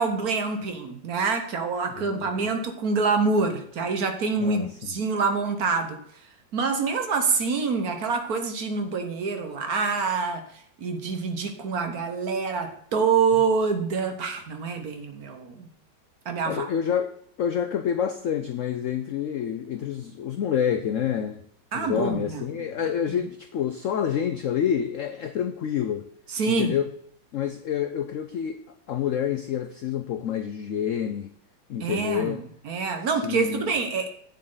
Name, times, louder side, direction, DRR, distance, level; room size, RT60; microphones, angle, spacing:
voice 1, 0.0-6.0 6.5-10.4 10.8-15.7 16.3-16.7 21.7-22.4 26.3-26.8 31.8-32.4 32.7-34.1, right 4 dB, 55° right, 6 dB, 1.4 m, -26 dB
voice 2, 2.0-2.5 4.4-4.7 16.5-17.1 17.4-21.4 21.7-26.1 26.5-26.9 27.3-28.6 28.9-31.3 31.7-32.4 33.1-33.6, left 9 dB, 80° left, 9 dB, 0.7 m, -28 dB
8.8 x 7.6 x 3.9 m, 0.66 s
omnidirectional pair, 2.0 m